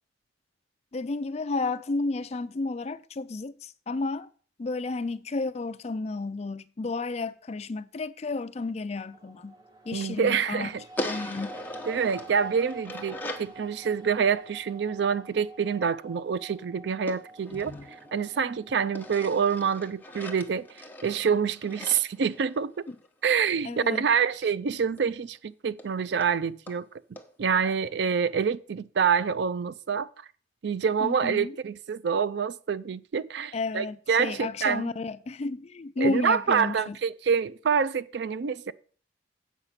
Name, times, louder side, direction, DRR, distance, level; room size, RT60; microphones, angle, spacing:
voice 1, 0.9-4.3 4.6-9.6 9.9-10.7 11.0-11.6 17.5-17.9 23.6-24.0 31.0-31.6 33.5-37.0, left 3 dB, 35° left, 0.4 m, -32 dB
sound 1, 9.1-21.3, right 2 dB, 20° right, 0.9 m, -49 dB
voice 2, 9.9-10.8 11.9-17.7 18.1-20.7 21.0-22.8 23.2-26.9 27.4-30.1 30.6-34.9 36.0-38.7, right 6 dB, 65° right, 0.4 m, -26 dB
sound 2, 11.0-13.6 17.1-18.5 18.9-23.1 25.0-25.1 25.4-25.5 25.8-25.9 26.2-26.3 26.7-26.8 27.2-27.3, left 1 dB, 10° left, 0.9 m, -39 dB
8.2 x 5.8 x 5.7 m
head